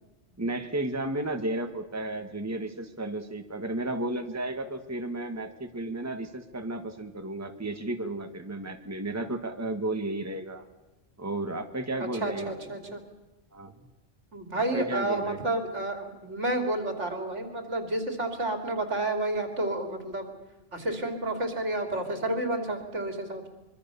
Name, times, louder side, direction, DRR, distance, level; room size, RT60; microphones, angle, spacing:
voice 1, 0.4-10.6 11.2-12.5 12.9-13.0 13.5-13.7 14.5-15.4, right 2 dB, 15° right, 6 dB, 1.6 m, -33 dB
voice 2, 12.2-13.0 14.3-20.3 20.7-23.5, right 2 dB, 75° right, 6 dB, 3.4 m, -30 dB
25.0 x 23.0 x 7.0 m, 1.0 s
omnidirectional pair, 1.2 m